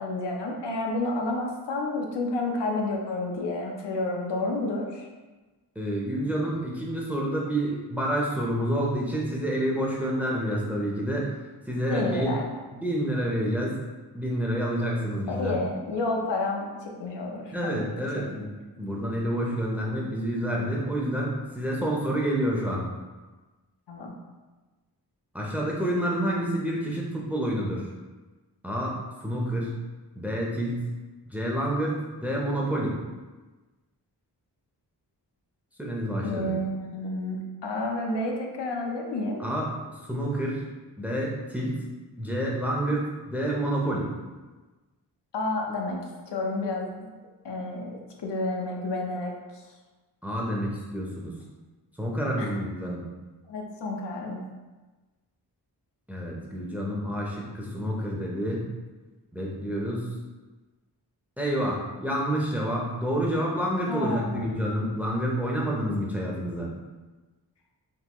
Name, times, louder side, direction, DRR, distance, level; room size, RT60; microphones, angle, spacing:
voice 1, 0.0-5.1 11.9-12.4 15.3-17.9 18.2-18.3 23.9-24.1 36.2-39.4 45.3-46.9 47.4-49.6 52.4-52.5 53.5-54.4 63.9-64.5, left 2 dB, 85° left, 0 dB, 0.6 m, -30 dB
voice 2, 5.8-11.3 11.7-12.3 12.7-13.7 14.1-15.6 17.5-18.5 18.8-22.9 25.3-27.9 28.6-28.9 29.2-29.7 30.2-30.9 31.3-33.0 35.8-36.6 39.4-39.7 40.0-40.6 41.0-41.7 42.2-44.1 50.2-51.3 52.0-53.0 56.1-58.7 59.3-60.1 61.4-66.7, right 1 dB, 5° right, -3 dB, 0.5 m, -28 dB
3.7 x 2.4 x 2.9 m, 1.2 s
wide cardioid pair, 105°, 41 cm